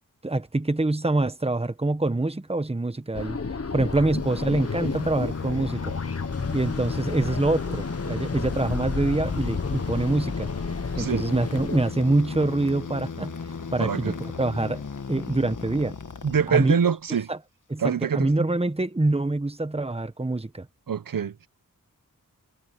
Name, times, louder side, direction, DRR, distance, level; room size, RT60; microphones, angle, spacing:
voice 1, 0.2-3.4 3.7-5.9 6.5-10.5 11.0-13.3 13.7-14.8 15.1-15.9 16.5-16.8 17.3-17.4 17.7-20.7, right 2 dB, 15° right, 1.2 m, -25 dB
sound 1, 3.1-11.9, left 4 dB, 45° left, 1.3 m, -31 dB
sound 2, 4.1-16.9, left 5 dB, 65° left, 1.6 m, -36 dB
voice 2, 13.8-14.1 16.2-17.3 17.8-18.3 20.9-21.5, right 7 dB, 80° right, 0.9 m, -25 dB
wide cardioid pair, 70°, 33 cm